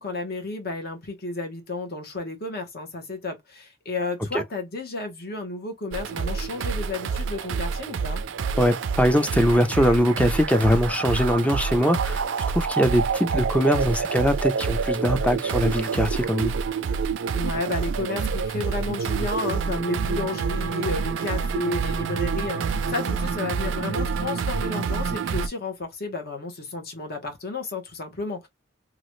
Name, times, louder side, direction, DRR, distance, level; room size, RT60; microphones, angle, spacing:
voice 1, 0.0-8.2 17.3-28.5, left 3 dB, 50° left, 1.1 m, -32 dB
sound 1, 5.9-25.5, right 5 dB, 70° right, 0.4 m, -27 dB
voice 2, 8.6-12.2 12.6-16.5, equal, 5° left, 0.4 m, -22 dB
3.0 x 2.4 x 3.0 m
head